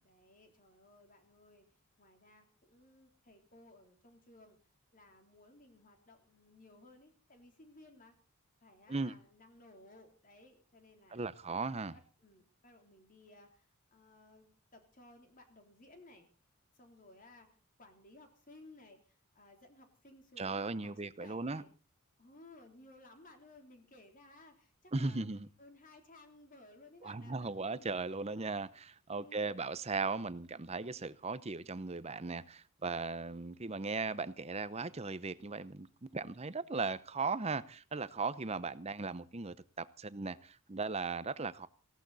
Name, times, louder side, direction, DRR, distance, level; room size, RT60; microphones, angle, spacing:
voice 1, 0.0-1.7 2.0-4.6 4.9-8.2 8.6-11.2 11.5-16.3 16.7-21.7 22.2-25.3 25.6-27.9 29.1-29.7, left 2 dB, 35° left, 3.3 m, -59 dB
voice 2, 11.1-12.0 20.4-21.6 24.9-25.5 27.0-41.7, right 3 dB, 30° right, 0.8 m, -37 dB
18.0 x 16.5 x 4.1 m
head